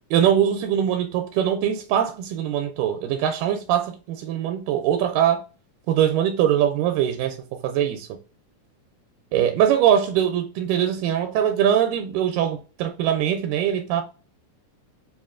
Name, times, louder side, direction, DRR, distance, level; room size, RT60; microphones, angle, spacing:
voice 1, 0.1-5.4 5.9-8.1 9.3-14.0, right 10 dB, 90° right, 2.1 m, -22 dB
7.0 x 2.4 x 2.4 m
omnidirectional pair, 3.7 m